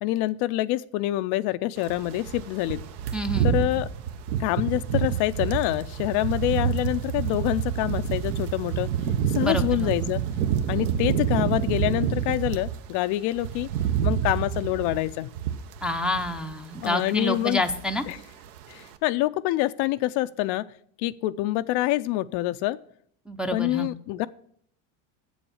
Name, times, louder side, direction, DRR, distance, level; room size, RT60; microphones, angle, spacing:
voice 1, 0.0-2.8 3.4-3.9 4.4-8.9 9.3-10.2 10.7-13.7 14.0-15.3 16.8-17.6 18.1-18.2 18.7-20.6 21.0-22.8 23.5-24.3, left 16 dB, 55° left, 13 dB, 0.5 m, -26 dB
sound 1, 1.8-12.8 13.1-16.5 16.8-17.1 17.4-18.2 18.4-18.7, right 8 dB, 70° right, 1.0 m, -28 dB
voice 2, 3.1-3.5 9.3-9.9 15.8-18.0 23.3-23.9, left 1 dB, ahead, 4 dB, 0.5 m, -28 dB
7.6 x 7.1 x 7.0 m, 0.64 s
supercardioid pair, 110°, 47 cm